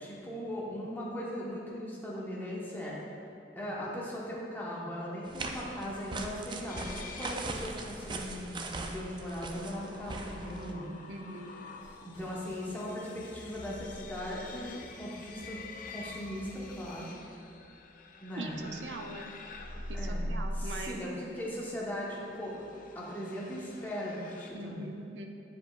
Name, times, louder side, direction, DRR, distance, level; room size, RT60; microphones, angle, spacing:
voice 1, 0.0-2.9 3.5-10.8 12.0-15.6 15.9-17.2 18.2-18.7 19.9-22.5 22.9-24.9, equal, 10° left, -6 dB, 1.1 m, -39 dB
sound 1, 5.3-10.7, right 2 dB, 25° right, 0.4 m, -40 dB
sound 2, 6.7-24.5, left 1 dB, 50° left, 0.4 m, -45 dB
voice 2, 10.4-11.6 18.3-19.3 19.9-21.0 24.5-25.3, right 2 dB, 85° right, 4 dB, 0.5 m, -42 dB
sound 3, 11.8-17.1, equal, 70° left, 1.5 m, -55 dB
8.9 x 5.0 x 2.4 m, 2.7 s
head